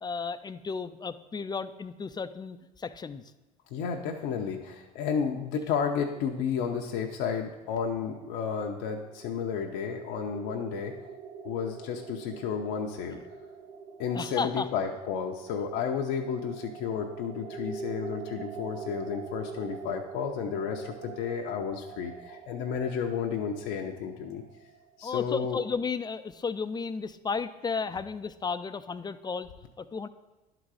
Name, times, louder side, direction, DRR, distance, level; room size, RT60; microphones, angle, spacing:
voice 1, 0.0-3.2 13.1-13.2 14.1-14.7 25.0-29.5 29.8-30.1, left 5 dB, 20° left, 13 dB, 0.4 m, -33 dB
voice 2, 3.7-11.0 11.4-13.2 14.0-24.4 25.0-25.6, left 6 dB, 65° left, 3 dB, 0.7 m, -32 dB
sound 1, 8.2-25.1, right 5 dB, 65° right, 1.1 m, -44 dB
11.0 x 3.9 x 4.8 m, 1.1 s
hypercardioid pair, 70°, 20 cm